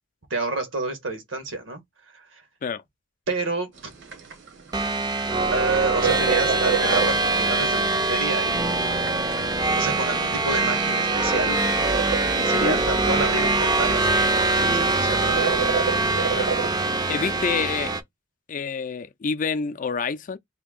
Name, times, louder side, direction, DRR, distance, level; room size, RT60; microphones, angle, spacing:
voice 1, 0.3-1.8 2.1-2.4 3.3-3.9 5.5-8.7 9.8-11.6 12.4-15.2, right 3 dB, 85° right, 1.3 m, -29 dB
sound 1, 3.8-16.7, right 6 dB, 65° right, 1.0 m, -31 dB
sound 2, 4.7-18.0, right 2 dB, 20° right, 0.5 m, -23 dB
voice 2, 17.1-17.9 18.5-20.4, left 5 dB, 45° left, 0.4 m, -27 dB
2.8 x 2.7 x 3.6 m
head